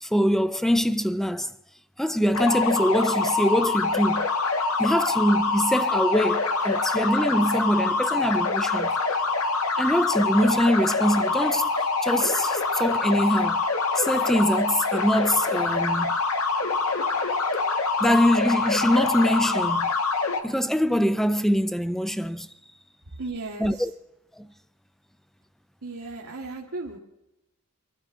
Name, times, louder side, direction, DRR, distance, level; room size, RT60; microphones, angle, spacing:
voice 1, 0.0-1.5 2.0-4.3 4.8-8.9 9.8-11.7 12.0-13.6 14.0-16.2 18.0-19.9 20.4-22.5 23.6-23.9 24.4-24.5, equal, ahead, 0.4 m, -23 dB
sound 1, 2.3-20.4, left 3 dB, 80° left, 1.4 m, -25 dB
voice 2, 23.2-23.8 25.8-27.0, right 3 dB, 80° right, 1.7 m, -35 dB
24.5 x 12.5 x 3.7 m
head